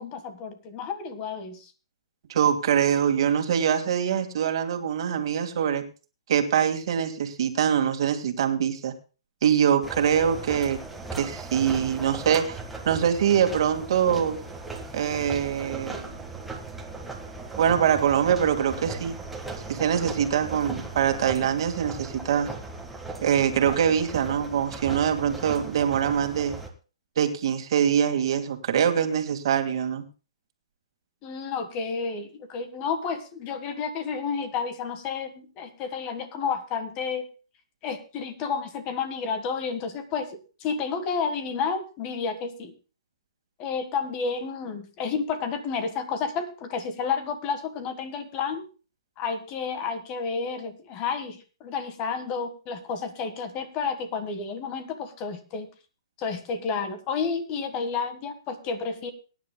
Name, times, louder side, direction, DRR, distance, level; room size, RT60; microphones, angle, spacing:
voice 1, 0.0-1.7 31.2-37.3 37.8-42.7 43.6-48.7 49.2-55.7 56.2-59.1, left 5 dB, 25° left, 9 dB, 1.5 m, -31 dB
voice 2, 2.3-5.8 6.3-8.9 9.4-10.8 11.2-12.6 12.9-14.4 14.9-16.2 17.6-19.2 19.7-22.5 23.2-26.6 27.2-30.0, right 8 dB, 55° right, 6 dB, 2.0 m, -24 dB
sound 1, 9.8-26.7, right 3 dB, 5° right, 1.6 m, -38 dB
22.5 x 10.0 x 2.3 m, 0.34 s
hypercardioid pair, 150°, 3 cm